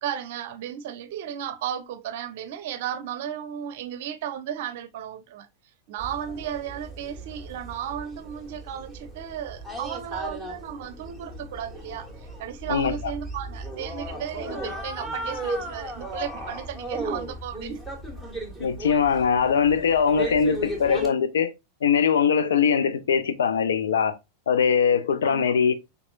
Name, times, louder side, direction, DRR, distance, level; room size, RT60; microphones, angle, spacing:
voice 1, 0.0-5.5 5.9-17.8 25.2-25.5, right 9 dB, 50° right, 0.6 m, -34 dB
sound 1, 6.0-21.1, right 1 dB, 5° left, 1.7 m, -36 dB
voice 2, 18.6-21.5 21.8-24.2 24.5-25.7, left 6 dB, 65° left, 0.6 m, -21 dB
5.9 x 3.5 x 2.5 m
figure-of-eight pair, 90°, 0 cm